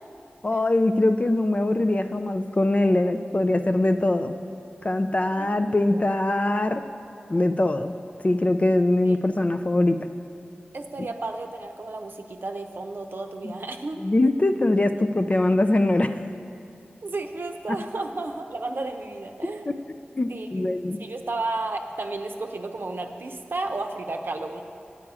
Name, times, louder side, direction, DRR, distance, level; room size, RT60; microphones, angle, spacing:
voice 1, 0.4-4.3 4.8-6.8 7.3-7.9 8.2-10.0 13.4-13.5 14.0-16.2 17.7-17.8 19.7-19.8 20.2-21.0, left 2 dB, 35° left, 8 dB, 0.4 m, -22 dB
voice 2, 10.7-14.0 17.0-19.8 20.3-24.6, right 2 dB, 65° right, 5 dB, 0.6 m, -33 dB
8.6 x 8.5 x 4.8 m, 2.8 s
wide cardioid pair, 55°, 4 cm